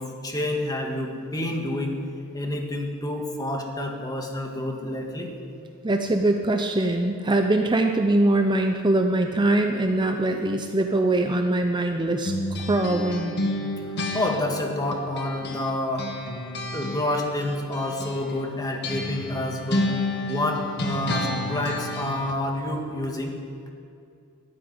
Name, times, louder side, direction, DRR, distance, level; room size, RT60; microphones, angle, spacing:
voice 1, 0.0-2.0 2.3-5.3 14.1-16.1 16.7-19.9 20.3-23.4, left 1 dB, 20° left, 2 dB, 1.8 m, -28 dB
voice 2, 5.8-13.3, right 2 dB, 20° right, 5 dB, 0.6 m, -22 dB
sound 1, 12.2-15.7 16.0-22.4, left 1 dB, 55° left, 1.5 m, -30 dB
12.5 x 10.0 x 9.7 m, 2.5 s
head